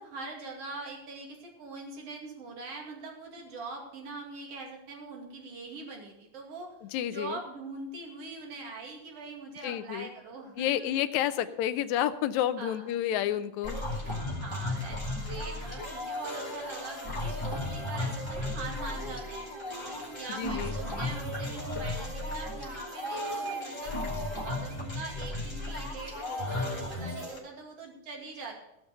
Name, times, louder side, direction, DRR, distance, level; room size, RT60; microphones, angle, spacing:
voice 1, 0.0-6.7 7.1-11.1 11.4-11.5 12.6-12.9 13.4-13.5 14.0-19.5 20.2-28.5, right 3 dB, 50° right, 0 dB, 3.2 m, -43 dB
voice 2, 6.8-7.4 9.6-10.1 10.6-13.8 20.4-20.8, left 11 dB, 80° left, 11 dB, 1.7 m, -30 dB
sound 1, 13.6-27.4, left 1 dB, 10° left, 2.8 m, -35 dB
17.0 x 5.9 x 6.7 m, 0.86 s
omnidirectional pair, 3.8 m